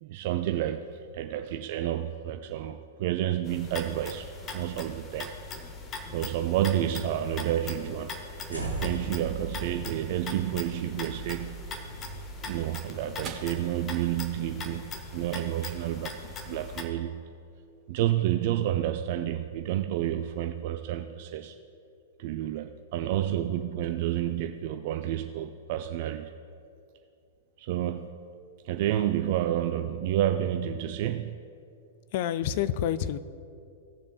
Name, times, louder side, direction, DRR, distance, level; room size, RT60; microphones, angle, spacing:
voice 1, 0.0-5.3 6.1-8.2 8.5-11.7 12.4-17.3 17.9-21.5 22.2-26.3 27.6-28.2 28.6-31.4, right 12 dB, 45° right, 7 dB, 0.3 m, -30 dB
sound 1, 3.5-16.8, left 3 dB, 25° left, 0.9 m, -41 dB
sound 2, 8.5-14.8, right 3 dB, 90° left, 1.6 m, -40 dB
sound 3, 11.9-20.5, right 6 dB, 30° right, 1.1 m, -52 dB
voice 2, 32.1-33.2, left 10 dB, 45° left, 14 dB, 0.4 m, -28 dB
17.0 x 7.0 x 2.3 m, 2.5 s
figure-of-eight pair, 100°, 0 cm